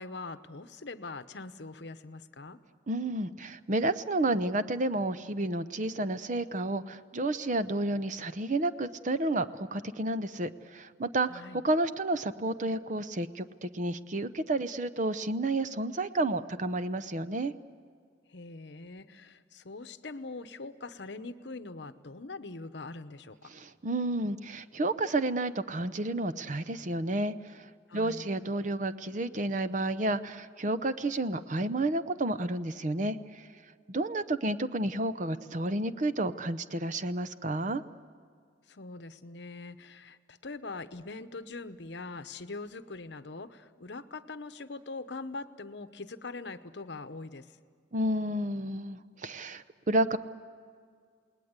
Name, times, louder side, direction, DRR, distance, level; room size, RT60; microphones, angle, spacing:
voice 1, 0.0-2.6 11.3-11.6 18.3-23.5 27.9-28.3 38.7-47.5, left 3 dB, 65° left, 11 dB, 0.9 m, -42 dB
voice 2, 2.9-17.5 23.5-27.6 27.9-33.4 33.9-37.8 47.9-50.2, right 2 dB, 40° right, 13 dB, 0.7 m, -31 dB
29.0 x 19.5 x 8.1 m, 2.1 s
head